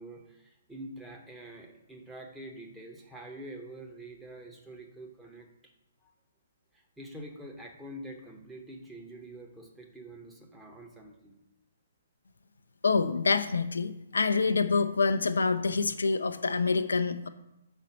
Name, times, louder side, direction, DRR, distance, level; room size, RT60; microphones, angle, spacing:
voice 1, 0.0-5.7 6.0-6.1 6.7-11.4, right 1 dB, 5° right, 0 dB, 0.9 m, -46 dB
voice 2, 12.8-17.3, left 4 dB, 70° left, 9 dB, 0.4 m, -26 dB
5.7 x 4.3 x 6.3 m, 0.87 s
figure-of-eight pair, 125°, 0 cm